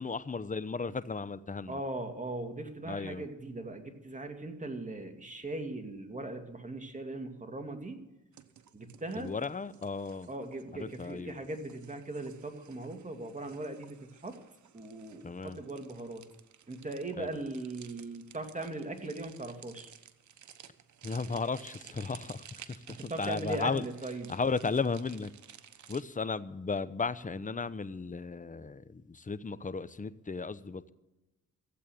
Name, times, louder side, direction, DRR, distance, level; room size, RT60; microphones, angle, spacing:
voice 1, 0.0-1.8 2.8-3.3 9.2-10.3 10.7-11.4 15.2-15.6 17.2-17.3 21.0-23.8 24.3-25.3 25.9-30.9, left 4 dB, 25° left, 14 dB, 0.9 m, -35 dB
voice 2, 1.7-8.0 8.7-9.3 10.3-14.4 14.7-16.2 16.7-19.9 22.9-24.3, right 2 dB, 25° right, 5 dB, 2.4 m, -39 dB
sound 1, 8.3-26.0, right 9 dB, 65° right, 1.1 m, -55 dB
15.5 x 8.3 x 9.2 m, 1.0 s
cardioid pair, 65°, 31 cm